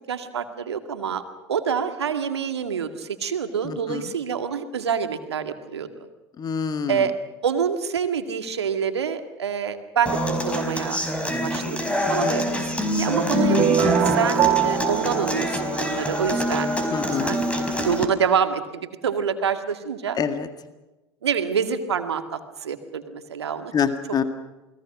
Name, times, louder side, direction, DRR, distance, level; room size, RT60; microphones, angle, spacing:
voice 1, 0.1-1.2 1.5-5.9 6.9-7.1 7.4-10.2 10.4-11.0 11.4-12.4 12.7-16.7 17.2-17.4 17.8-20.2 21.2-23.7, right 7 dB, 75° right, 8 dB, 2.1 m, -26 dB
voice 2, 3.6-4.0 6.4-7.1 12.2-12.3 16.9-17.4 20.2-20.5 23.7-24.2, left 6 dB, 30° left, 9 dB, 1.9 m, -26 dB
Human voice / Acoustic guitar, 10.1-18.0, equal, 10° left, 4.6 m, -25 dB
sound 1, 13.3-16.4, right 9 dB, 40° right, 2.5 m, -23 dB
29.0 x 21.0 x 6.2 m, 1.1 s
figure-of-eight pair, 80°, 14 cm